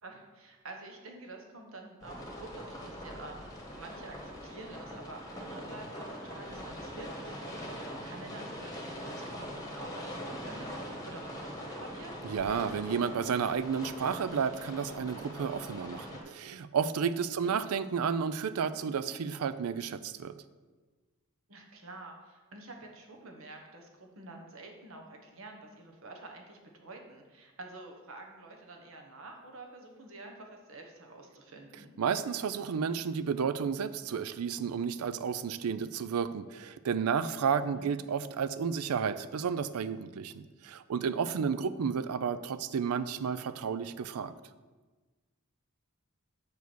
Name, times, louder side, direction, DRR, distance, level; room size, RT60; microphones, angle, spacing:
voice 1, 0.0-12.2 17.4-17.5 21.5-31.9 37.7-37.9 41.2-41.5, right 2 dB, 65° right, 2 dB, 1.2 m, -49 dB
sound 1, 2.0-16.2, equal, 15° left, 1.2 m, -42 dB
voice 2, 12.2-20.3 32.0-44.3, right 6 dB, 85° right, 14 dB, 0.4 m, -32 dB
6.9 x 4.7 x 6.1 m, 1.3 s
head